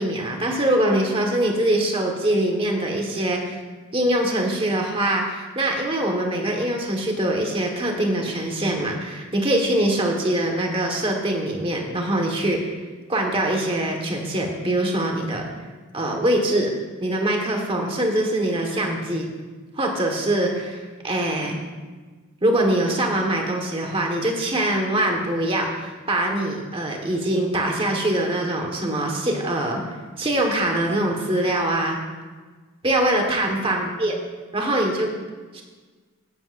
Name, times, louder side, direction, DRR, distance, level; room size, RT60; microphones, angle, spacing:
voice 1, 0.0-3.6 3.9-12.7 13.1-15.4 15.9-16.7 17.0-19.3 19.7-21.6 22.4-29.8 30.2-32.0 32.8-34.2 34.5-35.1 35.5-35.6, right 1 dB, 25° right, 1 dB, 1.5 m, -23 dB
16.0 x 11.0 x 2.6 m, 1.4 s
head